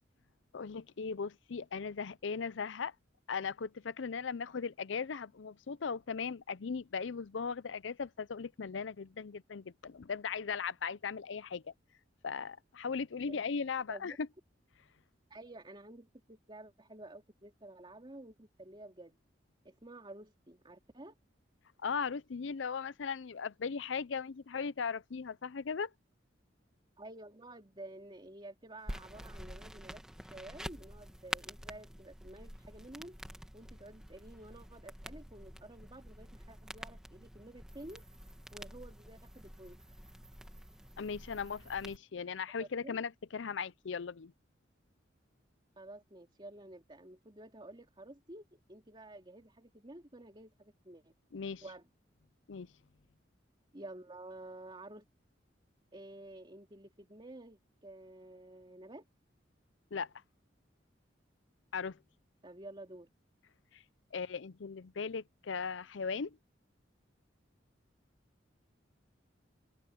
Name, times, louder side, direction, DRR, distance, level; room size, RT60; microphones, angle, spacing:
voice 1, 0.5-2.9 3.3-11.6 12.2-14.3 21.8-25.9 41.0-44.3 51.3-51.6 52.5-52.7 59.9-60.1 61.7-62.0 63.7-63.8 64.1-66.4, left 5 dB, 75° left, 0.6 m, -38 dB
voice 2, 15.3-19.2 19.6-21.1 27.0-33.2 33.5-38.0 38.5-39.8 42.6-43.0 45.8-51.1 51.6-51.9 53.7-55.0 55.9-59.0 62.4-63.1, right 1 dB, 25° right, 3.0 m, -51 dB
sound 1, 28.9-42.0, equal, 5° right, 2.1 m, -48 dB
head